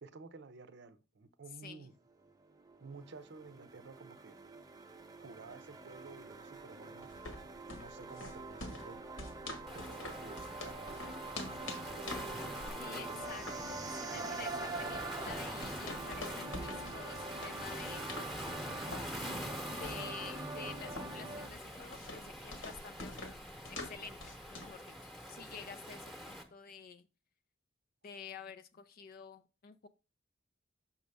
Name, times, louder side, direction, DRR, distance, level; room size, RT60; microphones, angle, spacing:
voice 1, 0.0-1.9 2.8-4.4 5.2-7.1 7.7-9.0 9.7-11.1 11.6-12.5 12.9-13.2 14.1-15.0, right 4 dB, 60° right, 13 dB, 0.6 m, -52 dB
sound 1, 2.2-21.5, right 2 dB, 20° right, 0.6 m, -44 dB
sound 2, 7.0-24.8, left 2 dB, 85° left, 1.5 m, -48 dB
Waves surf, 9.7-26.4, equal, ahead, 1.0 m, -46 dB
voice 2, 12.8-18.1 19.7-23.2 23.7-27.1 28.0-29.9, left 5 dB, 50° left, 10 dB, 0.4 m, -50 dB
6.5 x 6.0 x 3.4 m, 0.30 s
head